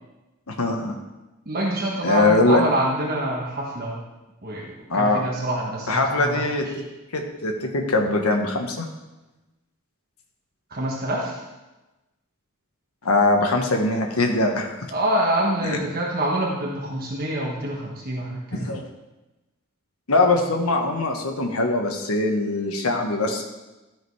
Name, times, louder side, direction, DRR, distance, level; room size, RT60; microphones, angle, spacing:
voice 1, 0.5-0.9 2.0-2.6 4.9-5.2 5.9-6.7 7.1-8.9 13.0-14.7 15.6-15.8 18.5-18.8 20.1-23.4, left 2 dB, 85° left, 3 dB, 1.3 m, -22 dB
voice 2, 1.4-4.0 4.4-4.7 4.9-6.4 6.7-6.8 10.7-11.4 14.9-18.7, right 1 dB, 45° right, -3 dB, 1.4 m, -26 dB
12.5 x 5.1 x 4.8 m, 1.1 s
head